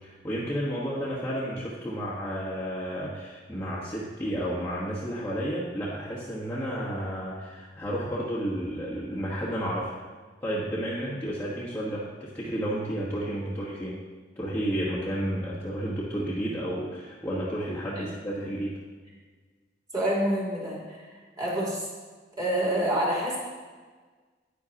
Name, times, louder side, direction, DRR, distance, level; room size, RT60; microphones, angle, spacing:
voice 1, 0.0-9.9 10.4-13.9 14.4-18.7, equal, 15° left, -8 dB, 1.3 m, -31 dB
voice 2, 19.9-21.1 21.4-21.9 22.4-23.4, right 1 dB, 20° right, -5 dB, 2.8 m, -27 dB
10.0 x 9.8 x 2.9 m, 1.4 s
head